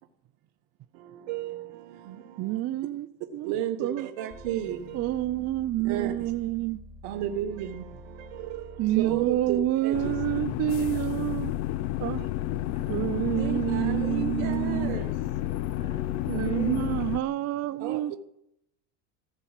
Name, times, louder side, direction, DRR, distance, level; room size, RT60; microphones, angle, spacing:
voice 1, 0.9-2.6 3.4-5.2 5.8-6.3 7.0-10.1 12.0-12.3 13.4-16.0 17.8-18.2, right 10 dB, 65° right, 1.3 m, -34 dB
voice 2, 2.4-3.1 3.3-3.5 3.8-4.1 4.9-6.8 8.8-11.5 12.0-12.3 12.9-15.0 16.2-18.1, right 14 dB, 35° right, 0.5 m, -28 dB
sound 1, 4.3-9.9, left 1 dB, 45° left, 3.8 m, -48 dB
voice 3, 9.0-9.4 12.4-13.3 15.8-17.2, left 1 dB, 15° left, 4.7 m, -39 dB
sound 2, 9.9-17.2, left 14 dB, 60° left, 0.7 m, -31 dB
15.0 x 7.0 x 8.9 m
supercardioid pair, 100°, 44 cm